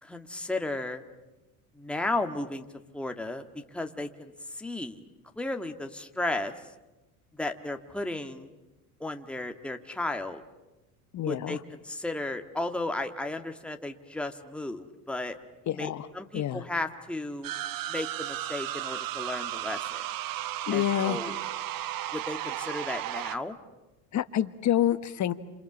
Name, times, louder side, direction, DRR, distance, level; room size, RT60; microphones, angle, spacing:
voice 1, 0.0-1.0 1.8-2.7 2.9-3.4 3.7-4.3 4.6-5.0 5.4-6.5 7.4-8.5 9.0-10.4 11.2-11.6 11.8-15.4 15.8-17.5 17.9-20.0 20.7-21.4 22.1-23.6, left 2 dB, ahead, 5 dB, 1.8 m, -34 dB
voice 2, 11.1-11.6 15.7-16.1 16.3-16.6 20.7-21.2 24.1-25.3, left 11 dB, 40° left, 12 dB, 1.4 m, -27 dB
sound 1, 17.4-23.4, right 13 dB, 50° right, 1.1 m, -34 dB
29.0 x 27.5 x 7.3 m, 1.1 s
supercardioid pair, 95°, 44 cm